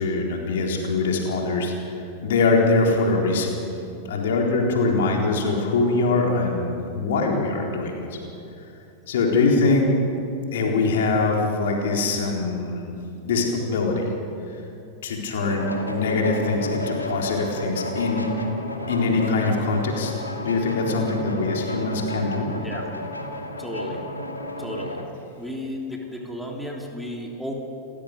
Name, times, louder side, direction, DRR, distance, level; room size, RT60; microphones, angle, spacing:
voice 1, 0.0-3.6 4.0-8.2 9.1-9.9 10.5-12.9 13.2-14.1 15.0-18.3 18.9-20.1 20.4-22.5, left 3 dB, 60° left, 0 dB, 4.0 m, -23 dB
sound 1, 15.4-25.1, left 1 dB, 80° left, 2.4 m, -32 dB
voice 2, 23.6-24.0 24.6-25.0 25.4-27.5, left 1 dB, ahead, -1 dB, 3.4 m, -33 dB
30.0 x 15.0 x 6.8 m, 2.8 s
figure-of-eight pair, 90°, 0 cm